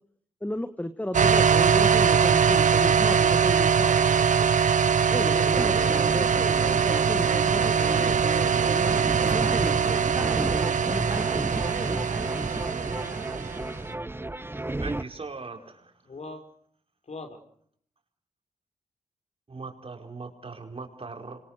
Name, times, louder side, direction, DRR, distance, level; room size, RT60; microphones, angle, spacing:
voice 1, 0.4-4.5 5.0-8.0 9.0-9.3 9.6-10.3, left 1 dB, 10° left, 10 dB, 1.8 m, -34 dB
sound 1, 1.1-13.7, right 7 dB, 70° right, 1.4 m, -22 dB
voice 2, 5.2-6.0 7.6-9.0 10.0-11.0 16.1-16.4 17.1-17.4, left 3 dB, 55° left, 6 dB, 5.7 m, -38 dB
sound 2, 5.5-15.0, right 2 dB, 15° right, 1.3 m, -32 dB
voice 3, 14.5-15.9 19.5-21.4, right 4 dB, 45° right, 4 dB, 5.0 m, -40 dB
26.5 x 23.0 x 6.6 m, 0.63 s
supercardioid pair, 50°, 13 cm